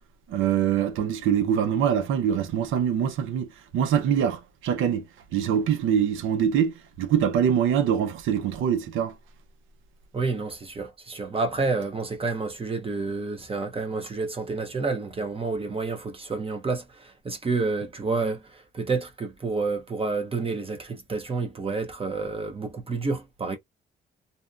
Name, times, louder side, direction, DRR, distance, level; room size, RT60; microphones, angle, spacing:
voice 1, 0.3-5.0 5.3-9.2, right 8 dB, 85° right, 0.6 m, -24 dB
voice 2, 10.1-23.6, right 3 dB, 30° right, 0.7 m, -29 dB
2.7 x 2.2 x 2.4 m
cardioid pair, 90°, 20 cm